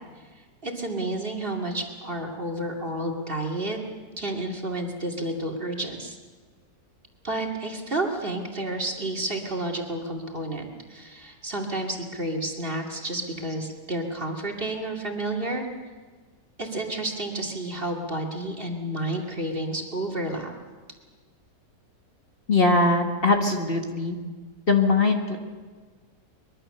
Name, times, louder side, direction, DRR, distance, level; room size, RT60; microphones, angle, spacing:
voice 1, 0.6-3.8 4.2-6.2 7.2-15.7 16.6-20.5, right 1 dB, 35° right, 1 dB, 2.7 m, -30 dB
voice 2, 22.5-24.2 24.7-25.4, left 3 dB, 35° left, 3 dB, 1.9 m, -21 dB
23.5 x 23.0 x 6.7 m, 1.4 s
omnidirectional pair, 1.7 m